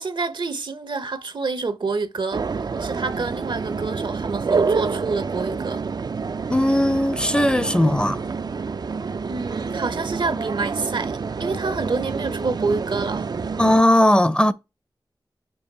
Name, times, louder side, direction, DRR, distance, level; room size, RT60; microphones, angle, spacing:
voice 1, 0.0-5.8 9.3-13.3, right 4 dB, 70° right, 0.8 m, -28 dB
sound 1, 2.3-13.8, right 5 dB, 55° right, 0.3 m, -27 dB
voice 2, 6.5-8.2 13.6-14.5, left 1 dB, 10° left, 0.5 m, -18 dB
7.0 x 2.6 x 5.3 m
wide cardioid pair, 75°, 8 cm